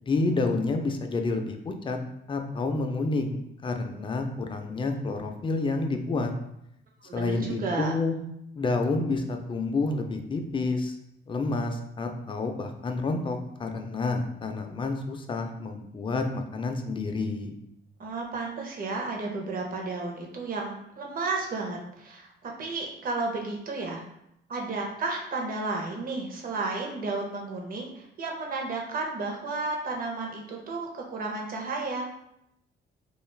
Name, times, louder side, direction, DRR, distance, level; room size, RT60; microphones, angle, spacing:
voice 1, 0.0-2.0 2.3-6.3 7.1-8.1 8.6-11.0 11.3-17.6, left 3 dB, 25° left, 5 dB, 0.4 m, -29 dB
voice 2, 7.0-7.9 18.0-24.0 24.5-32.1, right 3 dB, 45° right, 1 dB, 0.7 m, -32 dB
2.4 x 2.3 x 3.2 m, 0.79 s
cardioid pair, 90°, 20 cm